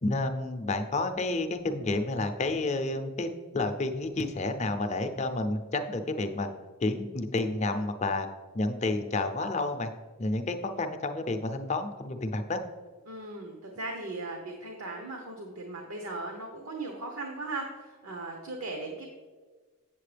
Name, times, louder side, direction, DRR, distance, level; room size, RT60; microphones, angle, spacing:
voice 1, 0.0-6.5 6.8-8.3 8.5-9.9 10.2-12.6, left 2 dB, 30° left, 6 dB, 0.5 m, -30 dB
voice 2, 13.1-19.1, right 2 dB, 80° right, 2 dB, 1.0 m, -38 dB
8.1 x 7.5 x 3.3 m, 1.4 s
head